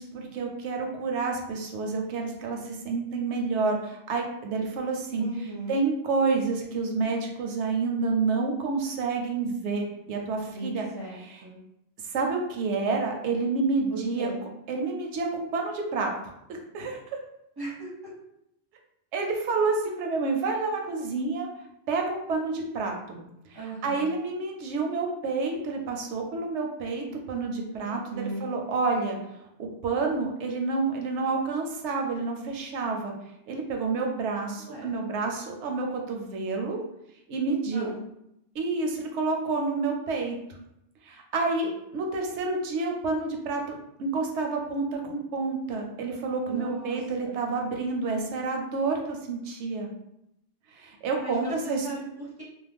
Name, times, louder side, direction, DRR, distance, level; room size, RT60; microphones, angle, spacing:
voice 1, 0.0-5.3 5.7-10.9 11.1-11.4 12.0-14.3 14.7-16.1 16.5-17.0 19.1-21.5 21.9-23.2 23.5-29.2 29.6-33.1 33.5-36.8 37.3-37.9 38.5-40.4 41.0-49.9 50.7-51.9, right 4 dB, 80° right, 2 dB, 0.9 m, -29 dB
voice 2, 5.1-5.8 10.5-10.7 10.9-11.6 13.9-14.4 17.6-17.9 23.5-24.1 27.8-28.5 34.6-34.9 37.7-38.0 46.5-47.4 51.2-52.4, right 2 dB, 25° right, -5 dB, 0.6 m, -37 dB
2.4 x 2.1 x 3.4 m, 0.81 s
omnidirectional pair, 1.2 m